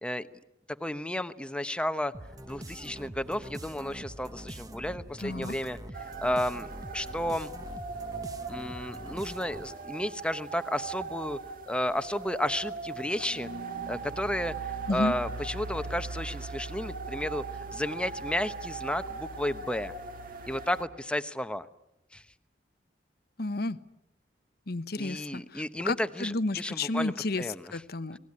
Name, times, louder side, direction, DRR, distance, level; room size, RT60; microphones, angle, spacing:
voice 1, 0.8-2.1 2.5-5.8 6.2-6.7 6.9-7.5 8.5-11.4 11.7-13.5 13.9-17.4 17.7-19.9 20.5-21.7 22.1-22.2 25.0-27.1 27.4-27.6, left 1 dB, 5° left, 11 dB, 1.0 m, -32 dB
sound 1, 2.1-9.8, right 1 dB, 20° right, 1.3 m, -44 dB
voice 2, 5.2-5.5 14.9-15.1 23.4-23.8 24.7-28.2, left 2 dB, 60° left, 13 dB, 1.0 m, -32 dB
sound 2, 5.9-20.8, right 4 dB, 50° right, 2.1 m, -39 dB
30.0 x 20.5 x 9.7 m, 0.88 s
head